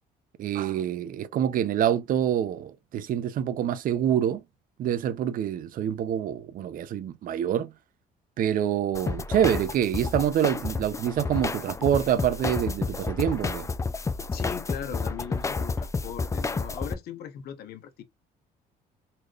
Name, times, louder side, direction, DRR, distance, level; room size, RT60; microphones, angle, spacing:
voice 1, 0.4-4.4 4.8-7.7 8.4-13.7, right 10 dB, 55° right, 0.6 m, -26 dB
sound 1, 9.0-16.9, left 4 dB, 20° left, 0.4 m, -30 dB
voice 2, 14.3-18.0, left 8 dB, 70° left, 0.9 m, -38 dB
4.2 x 3.2 x 2.4 m
cardioid pair, 110°, 17 cm